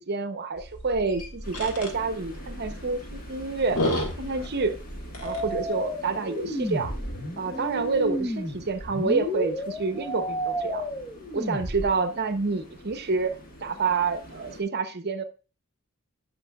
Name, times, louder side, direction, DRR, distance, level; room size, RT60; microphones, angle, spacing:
voice 1, 0.0-3.9 4.2-4.8 5.2-6.9 7.4-10.8 11.3-13.4 13.6-15.2, right 4 dB, 50° right, 0.8 m, -28 dB
sound 1, 0.6-5.7, left 1 dB, 85° left, 1.6 m, -33 dB
sound 2, 1.4-14.6, equal, 40° left, 1.5 m, -46 dB
sound 3, 5.2-11.9, equal, 15° left, 0.8 m, -32 dB
12.0 x 5.3 x 2.3 m
head